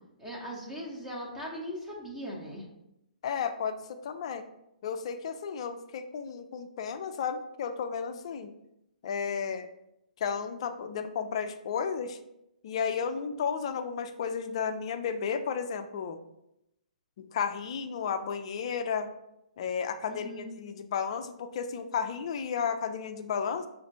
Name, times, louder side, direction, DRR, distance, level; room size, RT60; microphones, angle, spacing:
voice 1, 0.2-2.6 20.0-20.5, equal, 10° right, -3 dB, 0.7 m, -39 dB
voice 2, 3.2-4.4 4.8-8.5 9.0-9.7 10.2-12.2 12.6-16.2 17.2-19.1 19.6-23.7, left 6 dB, 40° left, 9 dB, 0.3 m, -33 dB
5.8 x 2.5 x 2.6 m, 0.84 s
figure-of-eight pair, 125°, 5 cm